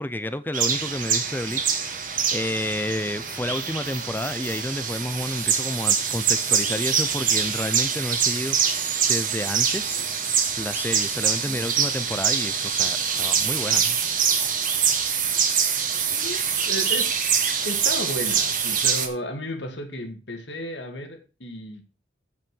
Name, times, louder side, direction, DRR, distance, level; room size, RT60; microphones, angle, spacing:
voice 1, 0.0-2.0 2.3-10.0 10.6-14.0, left 1 dB, 10° left, 0.6 m, -30 dB
sound 1, 0.5-19.1, right 7 dB, 45° right, 1.7 m, -24 dB
voice 2, 16.1-17.1 17.6-21.8, equal, 70° left, 2.2 m, -34 dB
8.8 x 6.4 x 6.3 m
head